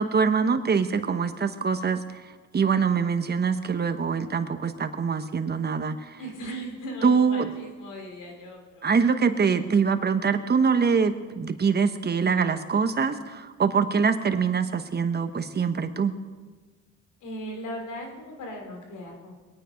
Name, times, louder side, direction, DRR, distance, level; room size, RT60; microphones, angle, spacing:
voice 1, 0.0-2.2 2.5-6.2 7.0-7.5 8.8-16.1, right 5 dB, 35° right, 9 dB, 1.2 m, -24 dB
voice 2, 6.2-9.0 17.2-19.3, equal, 85° left, 2 dB, 3.4 m, -38 dB
22.5 x 9.3 x 5.2 m, 1.4 s
cardioid pair, 90°, 30 cm